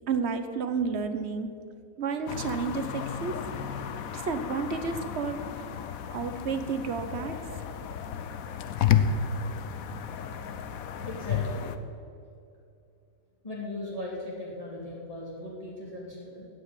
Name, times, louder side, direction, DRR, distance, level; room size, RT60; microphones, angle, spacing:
voice 1, 0.1-1.5 2.0-3.4 4.1-5.4 6.1-7.4, right 5 dB, 50° right, 9 dB, 1.1 m, -31 dB
sound 1, 2.3-11.8, left 8 dB, 70° left, 1.1 m, -32 dB
voice 2, 11.0-11.7 13.4-16.5, left 1 dB, 25° left, -5 dB, 2.4 m, -38 dB
16.0 x 5.7 x 9.9 m, 2.6 s
omnidirectional pair, 1.6 m